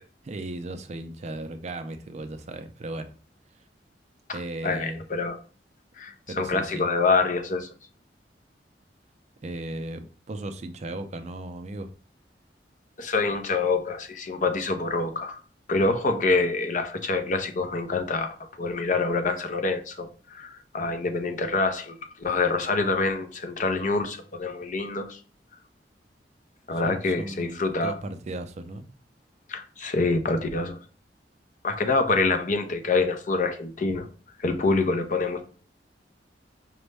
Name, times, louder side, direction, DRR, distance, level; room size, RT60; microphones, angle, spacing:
voice 1, 0.2-3.1 4.3-5.0 6.3-6.9 9.4-11.9 26.7-28.9, right 2 dB, 40° right, 0.4 m, -36 dB
voice 2, 4.6-5.4 6.0-7.7 13.0-15.4 15.7-25.2 26.7-27.9 29.5-30.8 31.6-34.1 34.4-35.4, left 3 dB, 45° left, 0.6 m, -26 dB
5.1 x 2.1 x 3.2 m
head